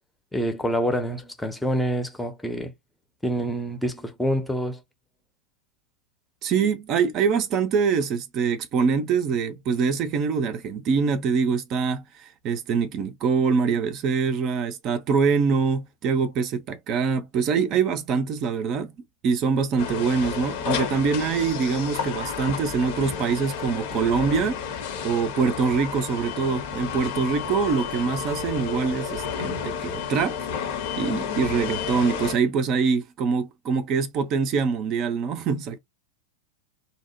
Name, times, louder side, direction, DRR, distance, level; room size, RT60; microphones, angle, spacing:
voice 1, 0.3-2.7 3.2-4.8, equal, 5° left, 0.7 m, -26 dB
voice 2, 6.4-18.9 19.2-24.6 25.0-30.4 31.0-35.8, right 5 dB, 35° right, 0.5 m, -24 dB
sound 1, 19.8-32.3, left 7 dB, 50° left, 0.8 m, -31 dB
2.8 x 2.1 x 2.7 m
figure-of-eight pair, 90°, 0 cm